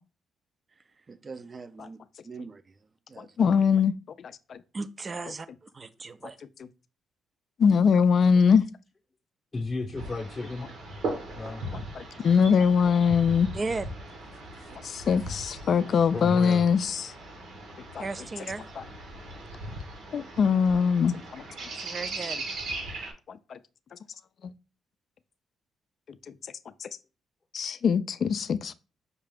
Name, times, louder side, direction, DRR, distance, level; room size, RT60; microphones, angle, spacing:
voice 1, 1.1-2.0 2.2-2.8 3.1-3.3 4.7-6.4 13.5-13.9 14.7-14.8 15.8-15.9 18.0-18.7 21.8-22.4, right 3 dB, 30° right, 0.4 m, -37 dB
voice 2, 3.2-4.0 4.5-4.6 7.6-8.6 11.7-13.5 14.8-17.1 18.0-18.1 20.1-21.4 23.3-23.6 24.4-24.5 26.8-26.9 27.5-28.7, left 6 dB, 55° left, 0.3 m, -22 dB
voice 3, 9.5-10.6 11.3-11.6 16.1-16.6, left 3 dB, 25° left, 0.7 m, -33 dB
sound 1, 9.9-23.1, right 2 dB, 80° right, 1.2 m, -39 dB
5.4 x 2.4 x 3.4 m
cardioid pair, 90°, 0 cm